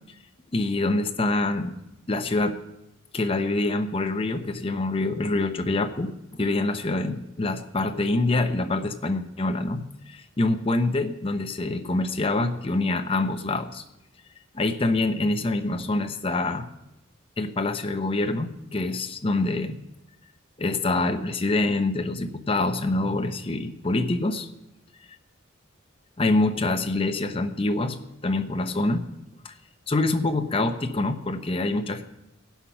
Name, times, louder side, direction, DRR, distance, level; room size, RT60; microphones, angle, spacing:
voice 1, 0.5-1.7 2.1-2.6 3.1-13.8 14.5-16.7 17.4-19.8 20.6-24.5 26.2-28.0 28.2-29.1 29.4-29.5 29.9-32.0, left 2 dB, 25° left, 7 dB, 0.7 m, -25 dB
17.5 x 5.8 x 5.7 m, 0.92 s
head